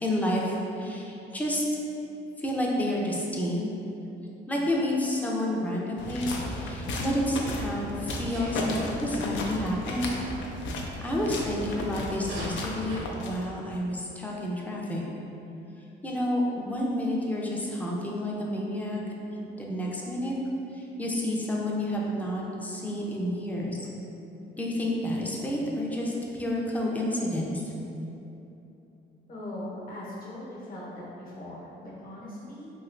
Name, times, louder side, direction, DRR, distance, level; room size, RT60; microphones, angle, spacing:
voice 1, 0.0-1.6 2.4-3.7 4.5-10.1 11.0-15.0 16.0-19.0 19.6-20.4 20.7-23.8 24.5-27.6, left 1 dB, 10° left, -3 dB, 0.5 m, -30 dB
sound 1, 6.0-13.7, left 2 dB, 70° left, 0.4 m, -34 dB
Sneeze, 7.5-7.7 8.3-8.6 11.1-11.3 12.1-13.1, right 2 dB, 65° right, 0.7 m, -40 dB
voice 2, 29.3-32.7, left 1 dB, 45° left, -6 dB, 0.9 m, -40 dB
3.1 x 2.8 x 2.5 m, 2.9 s
cardioid pair, 90°, 20 cm